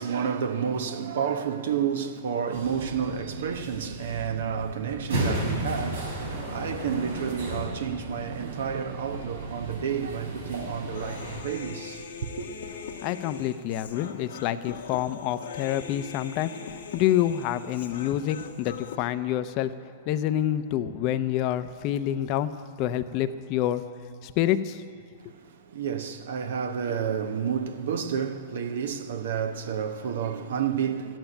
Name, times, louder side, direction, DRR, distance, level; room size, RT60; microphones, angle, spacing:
voice 1, 0.0-12.5 25.2-31.2, right 7 dB, 70° right, 1.0 m, -30 dB
sound 1, 2.5-11.4, right 1 dB, 85° right, 4.4 m, -34 dB
Human voice, 10.9-19.0, left 6 dB, 75° left, 1.2 m, -41 dB
voice 2, 13.0-19.7 20.1-22.5 22.8-23.8 24.2-24.8, left 12 dB, 45° left, 0.6 m, -27 dB
13.5 x 9.1 x 9.1 m
hypercardioid pair, 110°, 0 cm